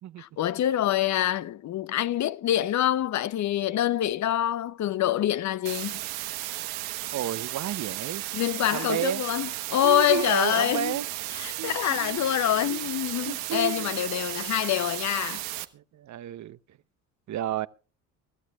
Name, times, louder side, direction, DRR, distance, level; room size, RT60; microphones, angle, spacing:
voice 1, 0.2-6.0 8.3-11.0 11.3-15.4, left 12 dB, 50° left, 0.7 m, -26 dB
sound 1, 5.7-15.7, right 16 dB, 85° right, 1.2 m, -34 dB
voice 2, 7.1-8.2 8.7-9.2 9.8-11.1 11.6-12.8 13.2-13.9 15.7-16.8 17.3-17.7, right 12 dB, 50° right, 0.8 m, -32 dB
25.0 x 13.5 x 2.4 m
supercardioid pair, 90°, 37 cm